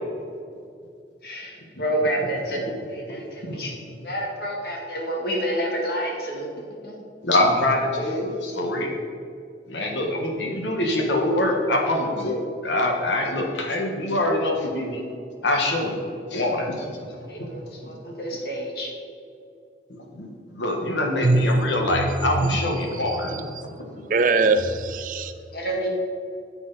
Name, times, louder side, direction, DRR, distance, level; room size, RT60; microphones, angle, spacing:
voice 1, 1.2-2.6 2.9-3.8 4.0-6.5 6.8-7.0 17.3-19.0 25.5-25.9, right 1 dB, 55° left, 0 dB, 1.9 m, -29 dB
voice 2, 3.1-3.6 7.2-8.9 9.7-15.0 15.4-15.9 16.3-16.9 17.8-17.9 19.9-20.3 20.5-23.5 23.8-23.9, left 1 dB, 85° left, 1 dB, 1.6 m, -24 dB
voice 3, 21.2-22.6 24.1-25.3, right 3 dB, 45° right, 10 dB, 0.5 m, -22 dB
9.3 x 7.9 x 4.2 m, 2.5 s
head